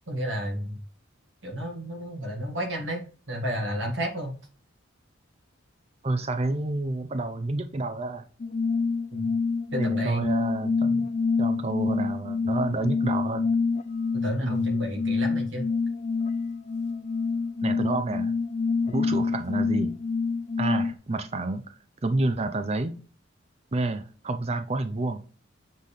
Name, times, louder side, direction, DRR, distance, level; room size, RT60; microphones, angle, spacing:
voice 1, 0.1-0.8 1.4-4.3 9.1-9.3 9.7-10.3 14.1-15.7, equal, 70° right, 2 dB, 1.9 m, -31 dB
voice 2, 6.0-8.2 9.7-11.1 11.4-13.5 14.4-14.5 17.6-18.3 18.9-20.0 20.6-21.7 22.0-23.0 23.7-25.2, right 2 dB, 30° right, 8 dB, 0.5 m, -29 dB
sound 1, 8.4-20.9, left 4 dB, 35° left, 0.3 m, -27 dB
7.5 x 4.0 x 3.3 m, 0.38 s
head